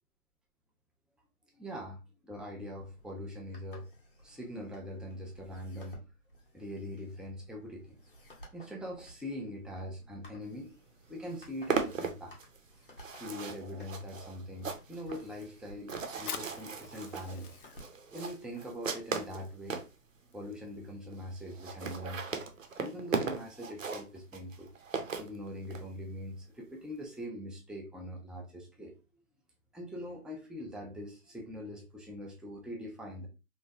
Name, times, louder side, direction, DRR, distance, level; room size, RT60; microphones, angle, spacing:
voice 1, 1.5-3.9 4.2-6.0 6.5-8.0 8.5-10.7 11.1-12.4 13.2-17.5 18.1-19.8 20.2-22.4 22.8-24.7 25.2-28.9 29.7-33.3, equal, ahead, 0.3 m, -42 dB
sound 1, 2.8-19.8, equal, 35° left, 0.7 m, -57 dB
sound 2, 10.7-10.8 11.1-19.9 20.5-20.6 20.8-20.9 21.1-21.2 21.5-25.8, right 5 dB, 60° right, 0.6 m, -37 dB
Fire, 16.1-23.3, left 7 dB, 85° left, 0.6 m, -50 dB
3.0 x 2.2 x 2.6 m
hypercardioid pair, 175°, 44 cm